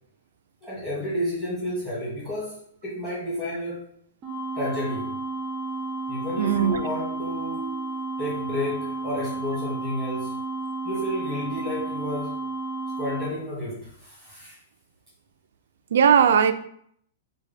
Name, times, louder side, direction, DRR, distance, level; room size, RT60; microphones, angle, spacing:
voice 1, 0.6-2.6 2.8-3.8 4.5-5.1 6.1-7.8 8.2-10.4 10.8-12.4 13.0-14.6, equal, 5° left, -8 dB, 1.6 m, -31 dB
sound 1, 4.2-13.3, right 2 dB, 20° right, 0.5 m, -32 dB
voice 2, 6.4-6.8 15.9-16.5, right 7 dB, 75° right, 10 dB, 0.3 m, -18 dB
4.5 x 2.2 x 3.4 m, 0.67 s
hypercardioid pair, 170°, 0 cm